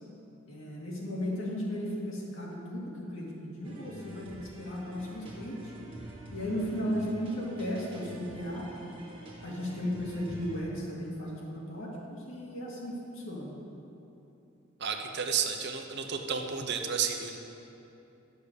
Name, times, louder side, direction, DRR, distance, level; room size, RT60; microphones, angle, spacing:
voice 1, 0.5-5.7 6.3-8.7 9.4-13.5, equal, 65° left, -4 dB, 2.3 m, -35 dB
sound 1, 3.6-10.6, right 1 dB, 25° right, 1.5 m, -47 dB
voice 2, 14.8-17.4, right 6 dB, 55° right, 4 dB, 0.8 m, -32 dB
10.5 x 6.7 x 6.8 m, 2.9 s
head